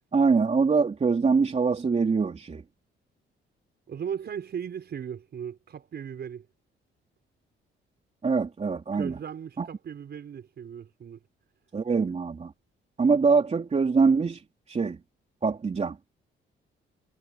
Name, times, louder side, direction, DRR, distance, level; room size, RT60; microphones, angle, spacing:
voice 1, 0.1-2.6 8.2-9.2 9.6-9.7 11.7-12.5 13.0-14.4 14.7-15.0 15.4-16.0, right 4 dB, 35° right, 3.1 m, -23 dB
voice 2, 3.9-6.5 8.9-11.2, right 8 dB, 55° right, 5.9 m, -37 dB
cardioid pair, 90°, 20 cm